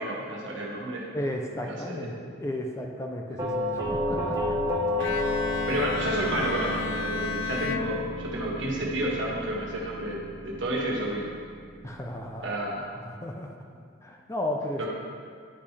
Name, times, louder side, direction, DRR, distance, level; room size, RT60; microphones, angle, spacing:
voice 1, 0.0-1.0 1.7-2.3 5.7-11.3 12.4-12.8 14.8-14.9, right 1 dB, 70° right, -4 dB, 1.5 m, -31 dB
voice 2, 1.1-4.6 11.8-12.6 13.1-13.6 14.0-14.8, left 1 dB, 15° left, 1 dB, 0.5 m, -34 dB
Doorbell, 3.4-12.2, left 1 dB, 20° right, 1.1 m, -32 dB
Bowed string instrument, 5.0-8.7, left 6 dB, 70° left, 0.4 m, -33 dB
10.0 x 5.3 x 3.3 m, 2.1 s
head